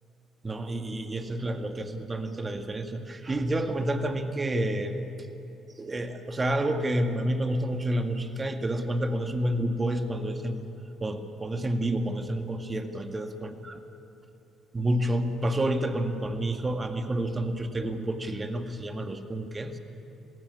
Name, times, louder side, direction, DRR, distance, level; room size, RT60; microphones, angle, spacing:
voice 1, 0.4-5.0 5.8-10.7 11.0-13.8 14.7-19.8, right 1 dB, 30° right, 6 dB, 1.9 m, -29 dB
21.0 x 15.5 x 9.9 m, 2.9 s
supercardioid pair, 60°, 0 cm